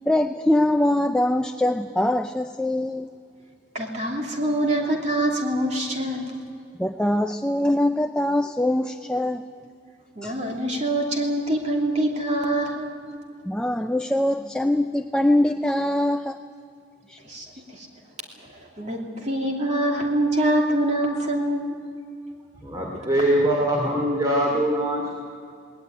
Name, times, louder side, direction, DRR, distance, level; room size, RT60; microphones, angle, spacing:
voice 1, 0.0-3.1 6.8-9.4 10.2-10.3 13.5-16.4 17.1-17.2 17.5-17.6, left 1 dB, 5° left, 6 dB, 0.5 m, -23 dB
voice 2, 3.7-6.3 10.2-12.9 17.2-17.9 18.4-21.8, right 1 dB, 40° right, 0 dB, 2.8 m, -25 dB
voice 3, 22.6-25.1, right 1 dB, 20° right, -2 dB, 3.0 m, -22 dB
19.5 x 19.0 x 9.1 m, 2.4 s
head